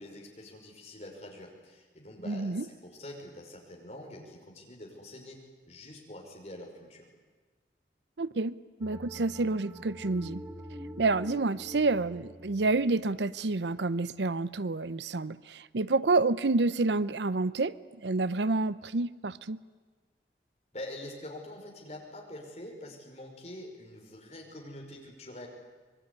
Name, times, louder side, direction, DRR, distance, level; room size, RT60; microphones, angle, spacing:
voice 1, 0.0-5.4 5.7-7.1 20.7-25.5, left 1 dB, 40° left, 1 dB, 5.6 m, -45 dB
voice 2, 2.2-2.7 8.2-10.4 11.0-17.7 18.0-19.6, right 3 dB, 85° right, 17 dB, 0.7 m, -29 dB
sound 1, 8.8-14.1, equal, 15° right, 1.3 m, -46 dB
25.0 x 21.5 x 9.8 m, 1.4 s
head